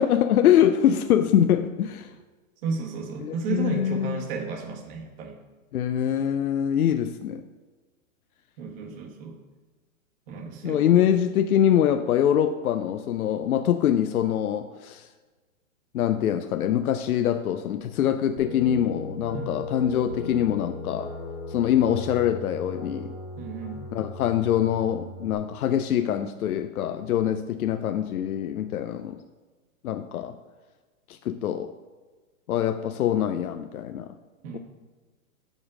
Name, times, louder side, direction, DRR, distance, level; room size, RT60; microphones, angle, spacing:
voice 1, 0.0-2.1 3.2-4.2 5.7-7.4 10.6-15.1 15.9-21.1 21.5-23.1 23.9-29.2 29.8-30.4 31.1-31.7 32.5-34.1, left 10 dB, 85° left, 9 dB, 0.6 m, -24 dB
voice 2, 2.6-5.4 8.6-9.4 10.3-11.1 19.3-19.5 23.4-23.9 34.4-34.6, right 5 dB, 40° right, 1 dB, 1.4 m, -33 dB
sound 1, 18.4-25.3, left 2 dB, 15° left, 0.3 m, -37 dB
7.2 x 5.4 x 4.8 m, 1.3 s
hypercardioid pair, 135°, 42 cm